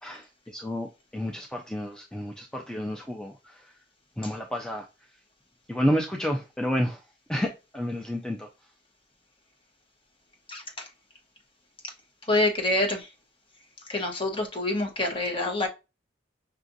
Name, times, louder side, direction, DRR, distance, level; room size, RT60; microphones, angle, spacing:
voice 1, 0.0-3.7 4.2-4.9 5.7-7.0 7.3-8.5, equal, 5° left, 0.4 m, -30 dB
voice 2, 12.3-13.0 13.9-15.7, left 2 dB, 30° left, 0.9 m, -26 dB
5.7 x 2.5 x 2.6 m
head